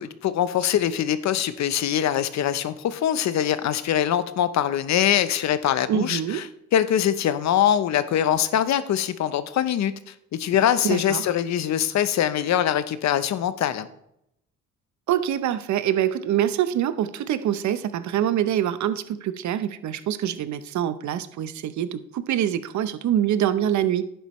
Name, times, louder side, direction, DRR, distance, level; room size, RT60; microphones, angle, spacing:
voice 1, 0.0-6.4 6.7-13.9, left 10 dB, 65° left, 13 dB, 0.7 m, -23 dB
voice 2, 5.9-6.5 10.8-11.3 15.1-24.1, right 10 dB, 70° right, 13 dB, 0.7 m, -25 dB
11.0 x 9.1 x 3.1 m, 0.79 s
cardioid pair, 90°, 30 cm